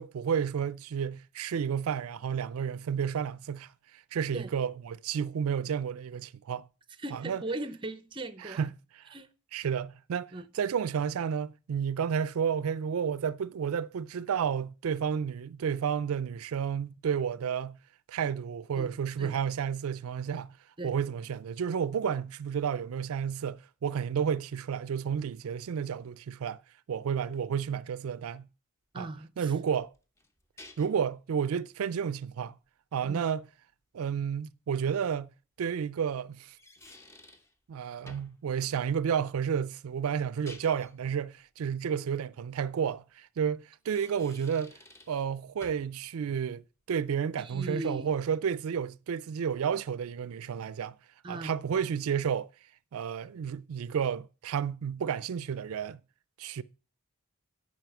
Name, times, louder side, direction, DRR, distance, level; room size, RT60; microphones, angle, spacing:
voice 1, 0.0-6.7 7.1-7.4 8.4-8.7 9.0-9.2 9.5-17.8 18.1-20.5 20.8-26.6 26.9-28.4 29.0-29.1 29.4-29.9 30.8-32.6 32.9-33.4 33.9-35.3 35.6-36.6 37.7-44.8 45.1-50.9 51.3-52.5 52.9-56.0 56.4-56.6, right 7 dB, 90° right, 0.4 m, -31 dB
voice 2, 7.0-8.6 9.1-9.3 10.3-10.4 18.7-18.9 19.2-19.4 20.8-20.9 28.9-29.5 33.0-33.2 47.4-48.2 51.2-51.5, right 2 dB, 20° right, 0.6 m, -38 dB
sound 1, 29.8-31.1 34.3-34.4 36.3-37.5 38.1-38.4 40.2-41.0 43.7-45.3 45.6-46.0, left 1 dB, 15° left, 0.8 m, -52 dB
9.1 x 5.5 x 7.0 m
head